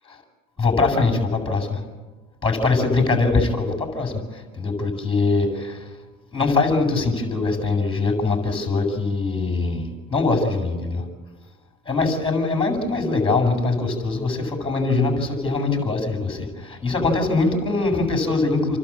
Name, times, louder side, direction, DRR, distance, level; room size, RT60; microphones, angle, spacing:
voice 1, 0.6-1.8 2.4-5.9 6.3-11.0 11.9-18.8, left 3 dB, 15° left, 4 dB, 7.7 m, -22 dB
30.0 x 12.0 x 8.8 m, 1.3 s
hypercardioid pair, 90°, 40 cm